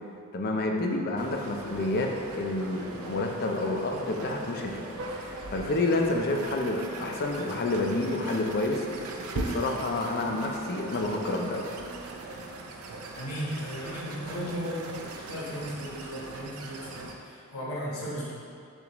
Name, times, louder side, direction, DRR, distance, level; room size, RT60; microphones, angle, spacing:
voice 1, 0.3-11.7, left 2 dB, 45° left, 2 dB, 0.4 m, -29 dB
sound 1, 1.2-17.1, right 2 dB, 80° right, 0.4 m, -40 dB
voice 2, 13.1-14.9 15.3-18.3, equal, 85° left, -7 dB, 1.1 m, -35 dB
6.8 x 2.5 x 3.0 m, 2.5 s
head